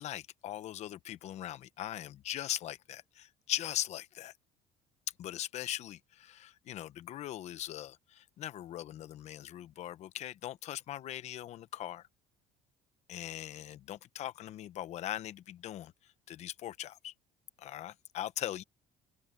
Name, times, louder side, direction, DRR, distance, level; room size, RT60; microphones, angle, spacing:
voice 1, 0.0-4.3 5.2-12.1 13.1-15.9 16.3-17.1 17.6-18.6, left 12 dB, 55° left, 1.0 m, -40 dB
open air
cardioid pair, 140°, 14 cm